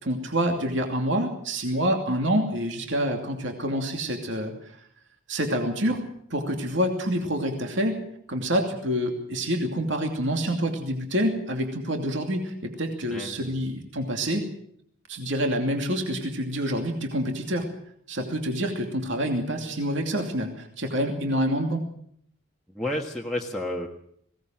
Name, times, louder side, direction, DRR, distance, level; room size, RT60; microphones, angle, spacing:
voice 1, 0.0-4.8 5.3-6.0 6.3-8.0 8.3-14.4 15.1-17.7 18.1-21.8, equal, 60° right, 3 dB, 2.7 m, -27 dB
voice 2, 13.1-13.7 22.7-23.9, left 1 dB, ahead, -4 dB, 1.5 m, -31 dB
21.0 x 17.5 x 7.6 m, 0.67 s
head